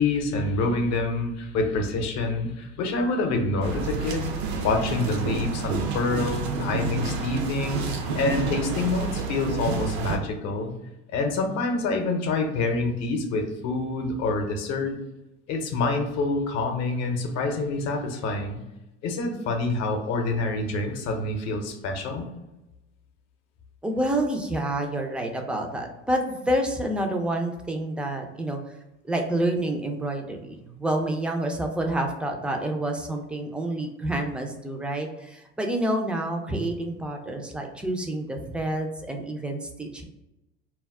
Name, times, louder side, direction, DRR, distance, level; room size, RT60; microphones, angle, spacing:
voice 1, 0.0-4.3 4.6-10.7 11.1-15.0 15.5-18.6 19.0-22.3, left 3 dB, 55° left, 4 dB, 0.7 m, -27 dB
sound 1, 3.6-10.2, right 4 dB, 70° right, 0.6 m, -29 dB
voice 2, 23.8-28.8 29.0-40.0, right 1 dB, 5° right, 3 dB, 0.3 m, -28 dB
2.2 x 2.0 x 3.4 m, 0.95 s
hypercardioid pair, 85°, 32 cm